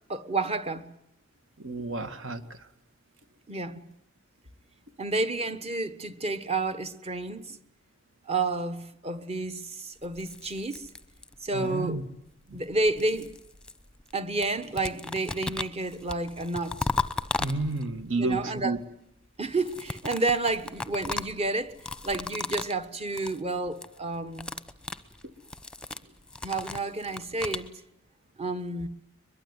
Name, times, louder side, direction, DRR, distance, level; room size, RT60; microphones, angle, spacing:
voice 1, 0.1-0.9 3.5-3.9 5.0-7.6 8.3-10.9 11.4-12.0 12.5-13.3 14.1-16.9 18.2-18.7 19.4-21.7 22.0-24.5 26.4-27.7 28.4-28.9, right 2 dB, 30° right, 1.2 m, -30 dB
voice 2, 1.6-2.7 11.5-12.0 12.5-12.6 17.4-18.8, right 2 dB, 70° right, 2.0 m, -31 dB
sound 1, 10.0-11.6 12.5-14.1 14.4-18.0 19.5-22.8 23.1-23.4 23.7-24.0 24.3-27.7, left 3 dB, 5° left, 0.9 m, -36 dB
22.5 x 22.0 x 9.6 m
head